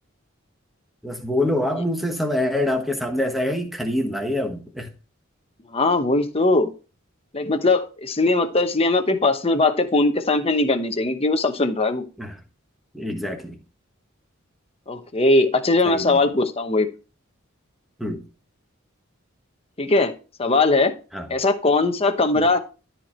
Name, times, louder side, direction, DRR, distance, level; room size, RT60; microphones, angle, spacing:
voice 1, 1.0-4.9 12.2-12.3 12.9-13.6 15.8-16.2 18.0-18.2 21.1-21.3 22.4-22.5, left 1 dB, ahead, 1.4 m, -25 dB
voice 2, 5.7-6.7 7.3-12.0 14.9-16.9 19.8-20.1 20.4-20.9 21.3-22.6, left 2 dB, 30° left, 0.9 m, -20 dB
13.0 x 4.5 x 4.4 m
head